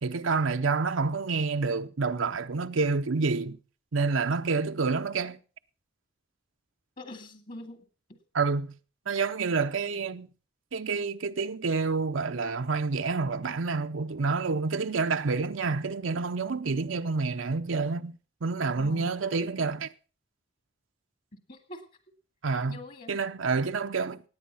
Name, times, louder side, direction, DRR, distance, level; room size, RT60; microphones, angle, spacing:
voice 1, 0.0-3.6 3.9-5.4 8.3-8.7 9.1-10.3 10.7-18.1 18.4-19.9 22.4-22.8 23.1-24.2, right 4 dB, 85° right, 0.7 m, -28 dB
voice 2, 7.0-8.2 18.8-19.1 21.5-21.9 22.7-23.1, left 1 dB, 45° left, 2.0 m, -44 dB
17.5 x 9.6 x 5.6 m
head